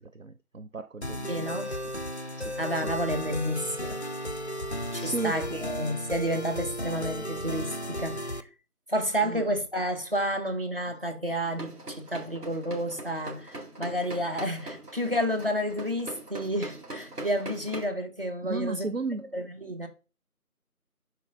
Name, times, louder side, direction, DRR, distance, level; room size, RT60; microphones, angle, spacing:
voice 1, 0.0-1.9 2.4-2.9 5.0-5.4 9.2-9.4 18.4-19.3, right 3 dB, 60° right, 0.5 m, -35 dB
sound 1, 1.0-8.4, equal, 45° left, 0.5 m, -34 dB
voice 2, 1.3-1.7 2.6-4.0 4.9-8.4 8.9-18.9 19.3-19.9, equal, 40° right, 1.1 m, -30 dB
sound 2, 11.4-17.9, right 2 dB, 75° right, 2.5 m, -42 dB
11.0 x 4.4 x 2.6 m
figure-of-eight pair, 175°, 46 cm